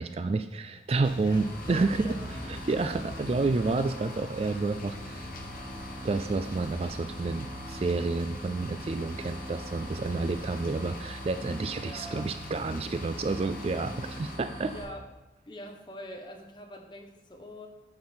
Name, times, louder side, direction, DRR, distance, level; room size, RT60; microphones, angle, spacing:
voice 1, 0.0-2.1 2.5-5.3 6.0-14.7, right 3 dB, 35° right, 10 dB, 0.3 m, -30 dB
sound 1, 1.0-14.4, left 2 dB, 50° left, 1.0 m, -45 dB
sound 2, 1.3-14.8, equal, 5° left, 3.7 m, -42 dB
voice 2, 1.7-2.2 2.7-2.9 11.8-12.4 14.7-15.0 15.4-17.7, equal, 25° left, 2 dB, 1.1 m, -44 dB
9.4 x 6.7 x 4.4 m, 0.95 s
head